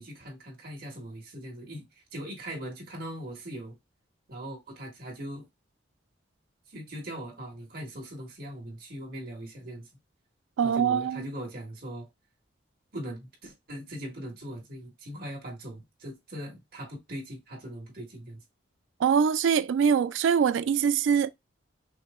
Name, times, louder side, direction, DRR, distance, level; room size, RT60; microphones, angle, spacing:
voice 1, 0.0-1.9 2.1-3.8 4.3-5.4 6.7-9.9 10.6-12.1 12.9-18.4, equal, 55° right, 1.7 m, -40 dB
voice 2, 10.6-11.3 19.0-21.3, right 7 dB, 80° right, 0.3 m, -23 dB
5.9 x 2.0 x 3.6 m
head